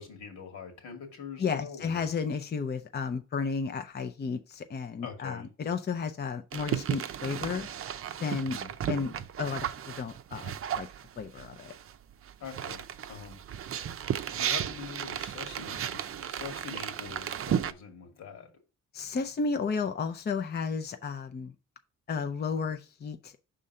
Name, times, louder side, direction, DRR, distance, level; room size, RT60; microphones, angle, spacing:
voice 1, 0.0-2.1 5.0-5.5 8.3-8.8 12.4-13.4 13.9-18.5, left 6 dB, 80° left, 3 dB, 2.3 m, -44 dB
voice 2, 1.4-7.7 8.2-8.6 8.9-10.9 11.2-11.7 18.9-21.5 22.1-23.3, left 5 dB, 35° left, 7 dB, 0.6 m, -33 dB
sound 1, 6.5-11.9 12.2-17.7, right 9 dB, 45° right, 0.5 m, -34 dB
5.5 x 3.8 x 5.4 m, 0.31 s
cardioid pair, 90°, 30 cm